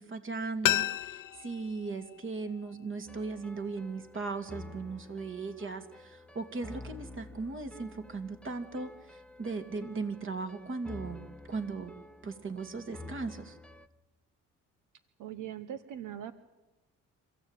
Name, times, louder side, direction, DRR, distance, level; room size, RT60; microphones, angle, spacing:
voice 1, 0.0-11.9 12.2-13.6, right 4 dB, 40° right, 8 dB, 2.7 m, -38 dB
sound 1, 0.6-3.4 3.7-3.8, left 15 dB, 85° left, 0.9 m, -34 dB
sound 2, 3.1-13.9, left 2 dB, 5° left, 1.1 m, -49 dB
voice 2, 15.2-16.3, right 10 dB, 85° right, 11 dB, 1.2 m, -40 dB
26.0 x 15.5 x 9.2 m, 1.1 s
cardioid pair, 90°, 30 cm